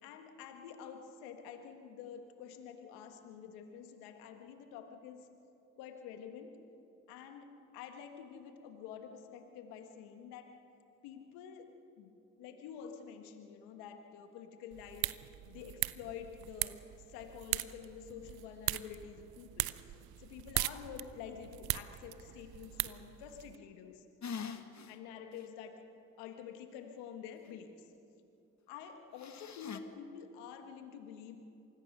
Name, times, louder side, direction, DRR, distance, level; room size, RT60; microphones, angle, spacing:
voice 1, 0.0-5.3 5.8-6.6 7.1-10.5 11.0-11.7 12.0-12.1 12.4-15.1 15.5-16.8 17.1-19.7 20.2-24.0 24.9-25.7 26.2-27.7 28.7-31.4, left 8 dB, 90° left, 6 dB, 1.6 m, -48 dB
sound 1, 14.7-23.6, right 16 dB, 70° right, 0.8 m, -40 dB
sound 2, 24.2-24.9 25.4-25.5 29.2-29.8, left 6 dB, 45° left, 1.7 m, -42 dB
26.5 x 20.5 x 6.7 m, 2.7 s
hypercardioid pair, 50°, 37 cm